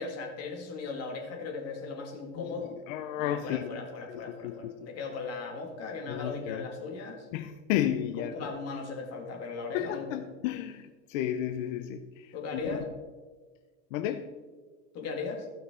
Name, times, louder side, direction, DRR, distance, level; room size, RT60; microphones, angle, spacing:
voice 1, 0.0-2.8 3.2-7.3 8.2-10.2 12.3-12.9 14.9-15.5, left 4 dB, 40° left, 1 dB, 2.2 m, -38 dB
voice 2, 2.9-4.7 6.1-6.7 7.3-8.5 9.7-12.8 13.9-14.3, left 11 dB, 80° left, 9 dB, 0.7 m, -33 dB
15.5 x 6.0 x 3.7 m, 1.4 s
supercardioid pair, 155°, 39 cm